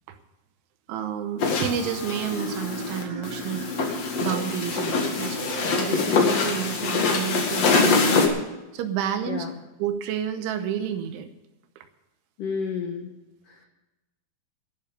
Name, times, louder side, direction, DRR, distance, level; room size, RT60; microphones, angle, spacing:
voice 1, 0.9-8.2 8.7-9.5 9.8-11.3 11.8-11.9, right 9 dB, 80° right, 9 dB, 3.1 m, -30 dB
sound 1, 1.4-8.3, left 4 dB, 65° left, 1.6 m, -24 dB
sound 2, 2.3-6.5 7.7-8.1, right 1 dB, 25° right, 4.4 m, -36 dB
voice 2, 12.4-13.1 13.5-13.7, left 6 dB, 85° left, 3 dB, 1.8 m, -31 dB
12.0 x 11.5 x 6.8 m, 1.0 s
omnidirectional pair, 6.0 m